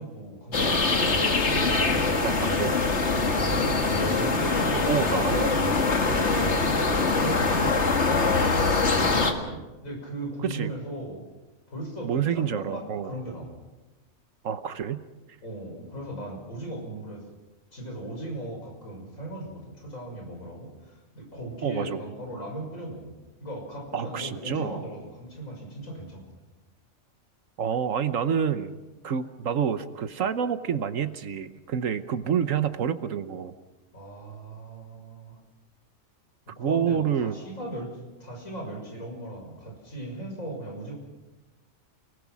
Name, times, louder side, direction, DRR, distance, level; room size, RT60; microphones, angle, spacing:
voice 1, 0.0-1.4 3.1-6.8 7.1-7.7 8.3-11.2 11.7-13.5 15.4-17.3 17.7-23.1 23.4-26.2 32.2-32.3 33.9-35.4 36.6-40.9, right 1 dB, 80° left, 0 dB, 6.7 m, -37 dB
sound 1, 0.5-9.3, left 3 dB, 55° left, 2.2 m, -23 dB
voice 2, 2.2-2.8 4.9-5.8 10.4-10.7 12.0-13.1 14.4-15.0 21.6-22.0 23.9-24.8 27.6-28.8 29.0-33.5 36.6-37.3, right 7 dB, 75° right, 11 dB, 1.3 m, -28 dB
30.0 x 19.0 x 6.2 m, 1.1 s
omnidirectional pair, 1.4 m